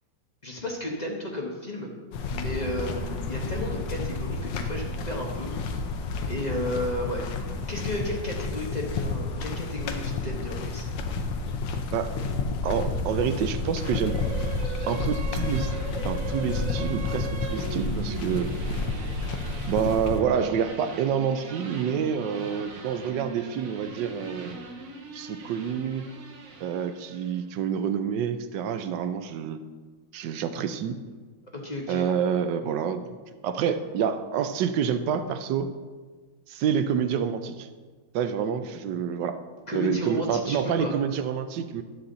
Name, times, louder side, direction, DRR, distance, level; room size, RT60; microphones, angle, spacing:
voice 1, 0.4-1.9 2.3-5.5 6.3-7.3 7.7-10.9 31.5-32.1 39.7-40.9, left 1 dB, 30° left, -1 dB, 0.9 m, -33 dB
sound 1, 2.1-20.2, left 3 dB, 75° left, 1.5 m, -30 dB
voice 2, 12.6-14.1 14.9-15.7 16.0-18.5 19.7-24.6 25.1-26.1 26.6-29.6 30.1-31.0 31.9-33.2 33.4-35.7 36.5-37.7 38.1-39.4 39.7-41.8, right 7 dB, 75° right, 10 dB, 1.2 m, -28 dB
sound 2, 13.8-27.4, right 4 dB, 55° right, 1.2 m, -39 dB
11.0 x 7.0 x 3.9 m, 1.4 s
omnidirectional pair, 2.0 m